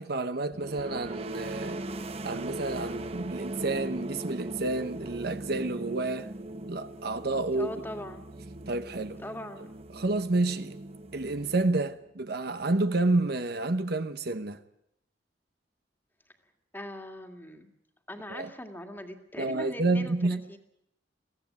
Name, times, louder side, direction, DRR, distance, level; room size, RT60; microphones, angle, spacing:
voice 1, 0.0-1.8 2.2-6.3 6.7-7.7 8.7-9.2 9.9-10.8 11.1-14.6 18.3-18.5 19.4-20.4, right 2 dB, 60° right, 1.0 m, -29 dB
sound 1, 0.5-12.1, right 1 dB, 35° right, 0.8 m, -39 dB
voice 2, 7.5-8.3 9.2-9.7 16.7-17.7 18.1-20.6, equal, 10° left, 2.0 m, -41 dB
22.5 x 16.0 x 9.4 m
head